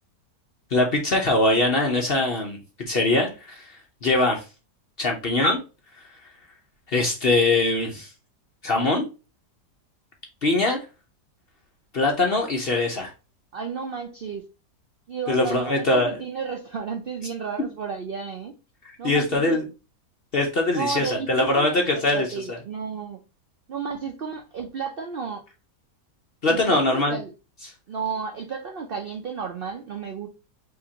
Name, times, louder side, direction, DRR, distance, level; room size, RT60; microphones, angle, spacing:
voice 1, 0.7-2.6 2.9-4.4 5.0-5.6 6.9-8.1 8.6-9.0 10.4-10.8 11.9-13.1 15.3-16.1 19.0-19.6 20.3-22.3 26.4-27.2, left 2 dB, 50° left, 2 dB, 0.7 m, -22 dB
voice 2, 13.5-14.4 15.1-18.6 19.0-19.6 20.7-23.2 23.7-25.4 26.4-27.3 27.9-30.3, right 6 dB, 75° right, 3 dB, 0.5 m, -32 dB
5.0 x 2.9 x 2.8 m, 0.31 s
omnidirectional pair, 1.8 m